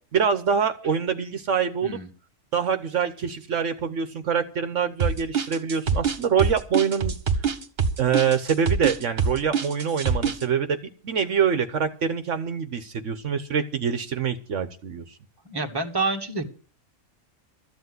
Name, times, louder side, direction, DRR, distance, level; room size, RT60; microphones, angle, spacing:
voice 1, 0.1-2.0 2.5-7.1 8.0-10.8 11.0-15.0, right 7 dB, 65° right, 10 dB, 1.2 m, -25 dB
sound 1, 5.0-10.4, right 5 dB, 50° right, 1.5 m, -24 dB
voice 2, 15.4-16.5, right 3 dB, 20° right, 4 dB, 1.5 m, -28 dB
14.0 x 8.1 x 7.7 m, 0.40 s
omnidirectional pair, 1.4 m